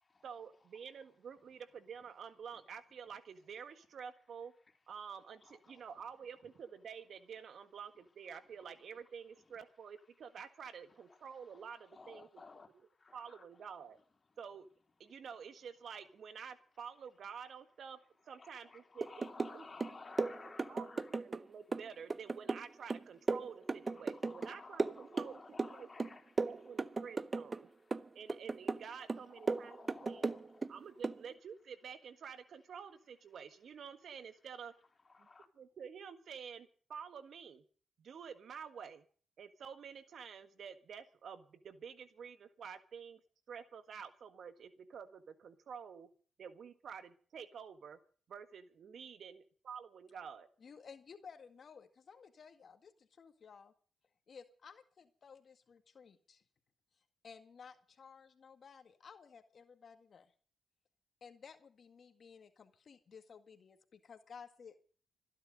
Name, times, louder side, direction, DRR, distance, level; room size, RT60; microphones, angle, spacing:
voice 1, 0.2-4.5 4.9-12.4 13.1-14.0 14.4-14.7 15.0-18.0 18.3-19.3 19.5-20.0 20.7-26.1 26.4-27.7 28.1-30.3 30.7-34.7 35.6-37.6 38.0-39.1 39.4-43.2 43.5-46.1 46.4-48.0 48.3-50.5, right 7 dB, 65° right, 11 dB, 1.6 m, -49 dB
voice 2, 5.4-5.9 11.1-13.5 18.4-21.2 23.9-27.1 27.7-28.2 29.0-30.7 35.3-35.5, left 4 dB, 40° left, 4 dB, 3.8 m, -56 dB
sound 1, 19.0-19.6 19.8-21.4 21.7-24.5 24.8-25.7 26.0-27.6 27.9-28.8 29.1-30.7 31.0-31.2, right 3 dB, 35° right, 0.7 m, -36 dB
voice 3, 50.6-53.7 54.3-56.4 57.2-60.3 61.2-64.8, left 6 dB, 60° left, 9 dB, 1.8 m, -56 dB
25.5 x 10.5 x 5.2 m, 0.44 s
supercardioid pair, 55°, 0 cm